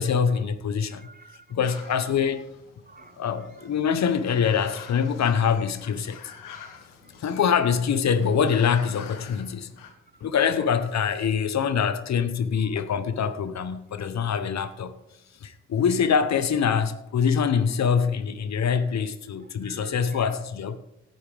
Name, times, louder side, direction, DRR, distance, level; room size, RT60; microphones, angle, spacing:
voice 1, 0.0-1.1 1.5-2.4 3.2-6.2 7.2-9.7 10.2-15.0 15.4-20.8, left 7 dB, 55° left, 1.0 m, -24 dB
voice 2, 0.9-1.5 2.0-2.4 2.9-3.2 3.5-3.7 6.3-6.4 7.0-7.2 10.1-10.3 10.7-10.8 19.4-20.4, right 3 dB, 25° right, 1.2 m, -51 dB
sound 1, 1.6-9.9, left 7 dB, 75° left, 1.5 m, -47 dB
17.5 x 9.4 x 3.5 m
hypercardioid pair, 40°, 33 cm